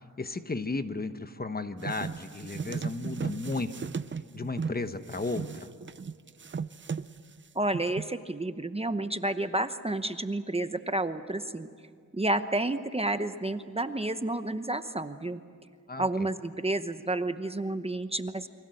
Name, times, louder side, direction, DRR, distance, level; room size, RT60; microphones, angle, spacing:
voice 1, 0.2-3.9 4.3-5.7 15.9-16.3, left 3 dB, 30° left, 10 dB, 1.1 m, -34 dB
sound 1, 1.8-4.8 5.1-7.4 7.7-8.1, right 5 dB, 35° right, 0.6 m, -36 dB
voice 2, 7.5-11.7 12.1-15.4 16.0-18.5, right 2 dB, 20° right, 9 dB, 0.9 m, -30 dB
29.0 x 24.0 x 7.8 m, 2.2 s
wide cardioid pair, 115°, 32 cm